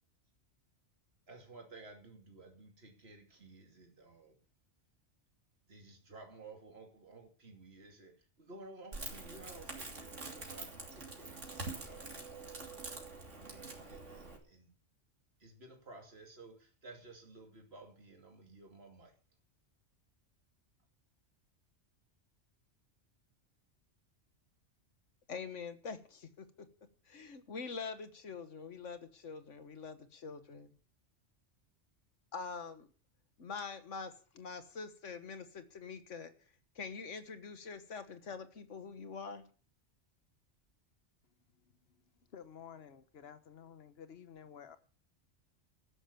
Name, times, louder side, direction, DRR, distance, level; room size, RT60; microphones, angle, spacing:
voice 1, 1.3-4.4 5.7-12.2 13.4-14.8 15.4-19.2, right 2 dB, 55° right, 3.0 m, -55 dB
Crackle, 8.9-14.4, right 3 dB, 85° right, 3.4 m, -45 dB
voice 2, 25.3-26.7 27.1-30.7 32.3-32.9 33.4-36.3 36.8-39.4, left 5 dB, 85° left, 1.8 m, -45 dB
voice 3, 41.9-44.8, left 8 dB, 60° left, 1.3 m, -53 dB
13.5 x 10.0 x 7.0 m
omnidirectional pair, 1.2 m